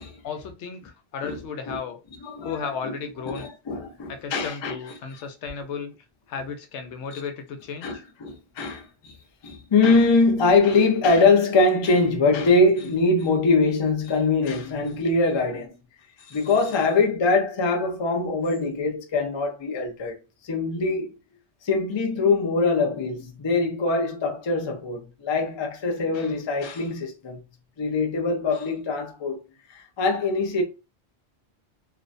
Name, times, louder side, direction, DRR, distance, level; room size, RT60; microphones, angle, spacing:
voice 1, 0.2-2.0 2.4-3.5 4.1-5.9 6.3-8.0, left 6 dB, 85° left, 0.9 m, -34 dB
voice 2, 2.2-2.9 3.3-4.8 7.8-9.2 9.4-15.8 16.3-20.2 20.4-21.1 21.6-27.4 27.8-29.4 29.7-30.6, left 3 dB, 50° left, 0.3 m, -23 dB
2.4 x 2.1 x 2.5 m
omnidirectional pair, 1.1 m